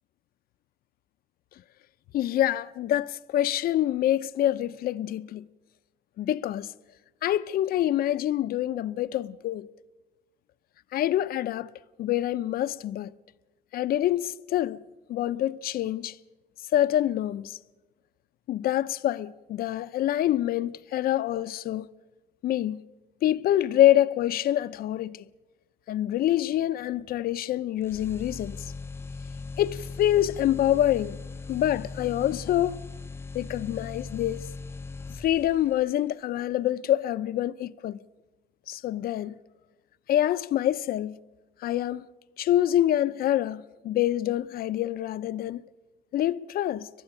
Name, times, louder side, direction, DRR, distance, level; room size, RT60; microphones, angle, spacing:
voice 1, 2.1-5.5 6.2-6.7 7.2-9.7 10.9-11.7 12.0-13.1 13.7-14.8 15.1-16.2 16.7-17.6 18.5-21.9 22.4-22.8 23.2-25.2 25.9-28.7 29.6-31.2 31.5-32.8 33.3-34.5 35.2-38.0 38.7-39.4 40.1-41.2 41.6-42.1 42.4-45.6 46.1-46.9, left 12 dB, 60° left, 0.7 m, -26 dB
sound 1, 27.8-35.8, left 3 dB, 15° left, 0.6 m, -39 dB
30.0 x 12.0 x 8.8 m
cardioid pair, 110°, 17 cm